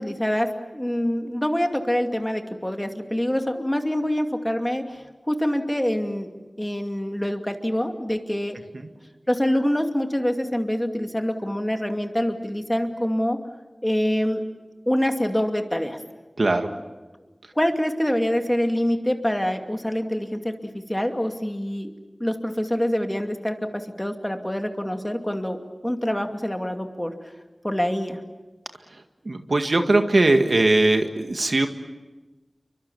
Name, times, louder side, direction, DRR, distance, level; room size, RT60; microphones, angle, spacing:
voice 1, 0.0-6.3 6.6-8.6 9.3-13.4 13.8-14.4 14.9-16.0 17.6-21.9 22.2-27.1 27.6-28.2, equal, 15° left, 5 dB, 2.5 m, -25 dB
voice 2, 16.4-16.7 29.3-31.7, right 2 dB, 70° right, 5 dB, 1.9 m, -20 dB
29.5 x 24.0 x 7.1 m, 1.2 s
wide cardioid pair, 50°, 0 cm